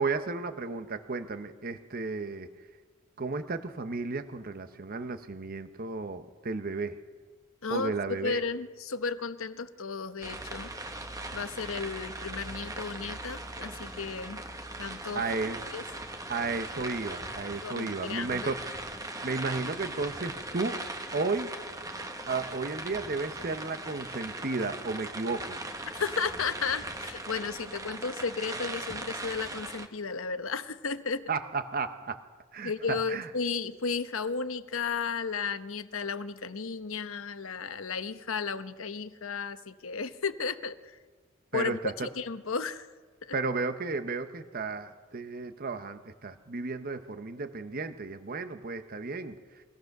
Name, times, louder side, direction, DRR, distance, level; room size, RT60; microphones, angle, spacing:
voice 1, 0.0-2.5 3.2-7.0 7.7-8.4 15.1-15.6 16.3-18.6 19.2-20.8 21.1-21.5 22.3-25.6 31.3-32.2 32.5-33.3 41.5-42.1 43.3-49.6, right 3 dB, 45° right, 9 dB, 0.8 m, -33 dB
voice 2, 7.6-10.7 11.3-14.4 14.8-15.2 15.7-15.8 17.6-18.5 25.9-31.3 32.6-41.0 41.5-42.9 43.2-43.3, left 5 dB, 75° left, 11 dB, 0.9 m, -34 dB
sound 1, 10.2-29.9, right 2 dB, 15° right, 1.3 m, -39 dB
23.5 x 17.5 x 6.6 m, 1.4 s
head